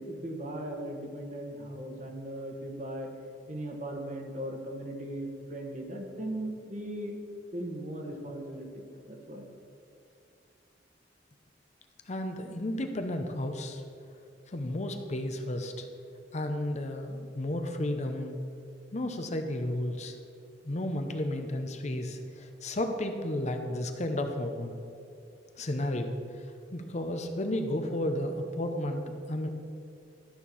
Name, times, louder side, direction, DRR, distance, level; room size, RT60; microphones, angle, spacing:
voice 1, 0.0-3.1 3.5-7.2 7.5-9.5, right 1 dB, 45° right, 2 dB, 1.4 m, -38 dB
voice 2, 12.1-13.8 14.5-15.9 16.3-18.4 18.9-20.2 20.6-24.7 25.6-26.1 26.7-29.5, left 1 dB, 40° left, 6 dB, 0.7 m, -32 dB
13.0 x 4.5 x 7.0 m, 2.4 s
head